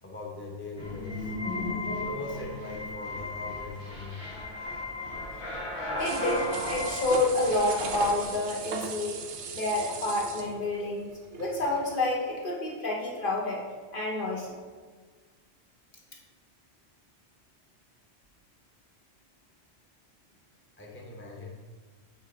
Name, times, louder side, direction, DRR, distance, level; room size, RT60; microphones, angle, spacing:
voice 1, 0.0-1.3 2.0-4.2 20.8-21.6, left 3 dB, 10° left, -2 dB, 0.8 m, -41 dB
sound 1, 0.8-8.3, left 1 dB, 75° left, 1.5 m, -35 dB
voice 2, 6.0-9.2 9.5-13.6 13.9-14.5, left 2 dB, 55° left, -2 dB, 1.0 m, -29 dB
sound 2, 6.0-12.0 12.3-12.4, right 6 dB, 85° right, 1.0 m, -39 dB
8.3 x 3.2 x 3.9 m, 1.5 s
omnidirectional pair, 1.1 m